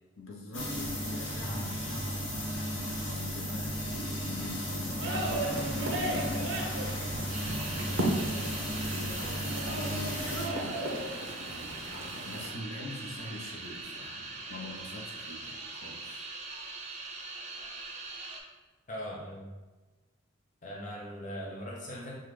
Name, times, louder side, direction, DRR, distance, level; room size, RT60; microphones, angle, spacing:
voice 1, 0.2-16.3, left 1 dB, 80° left, -1 dB, 0.8 m, -45 dB
sound 1, 0.5-10.5, equal, 65° left, 1.2 m, -35 dB
sound 2, 5.0-12.5, right 1 dB, 70° right, 0.7 m, -35 dB
sound 3, 7.3-18.4, right 3 dB, 35° right, 0.6 m, -42 dB
voice 2, 18.9-19.5 20.6-22.1, equal, 35° left, -3 dB, 0.6 m, -40 dB
5.7 x 2.4 x 3.2 m, 1.2 s
head